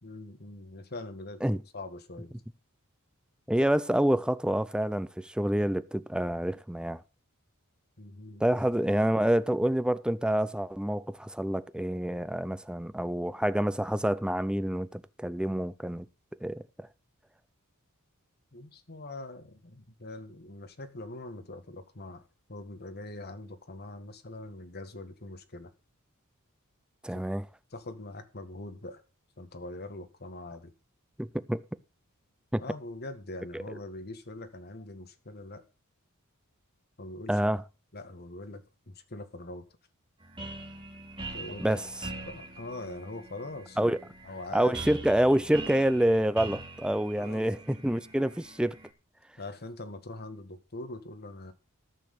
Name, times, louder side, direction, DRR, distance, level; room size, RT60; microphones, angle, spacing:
voice 1, 0.0-2.4 8.0-8.4 18.5-22.2 22.5-25.7 27.1-27.2 27.7-29.0 29.4-30.7 32.6-35.6 37.0-37.4 37.9-39.7 41.3-41.8 42.3-43.9 44.2-44.8 47.2-47.5 49.4-51.5, left 2 dB, 50° left, 1.9 m, -42 dB
voice 2, 3.5-7.0 8.4-16.1 16.4-16.9 27.0-27.4 31.2-31.6 32.5-32.6 33.5-33.6 37.3-37.6 41.6-41.8 43.8-44.0 44.5-48.8, right 1 dB, 5° right, 0.5 m, -27 dB
sound 1, 40.2-48.9, right 2 dB, 25° right, 3.4 m, -43 dB
14.0 x 6.5 x 6.7 m
head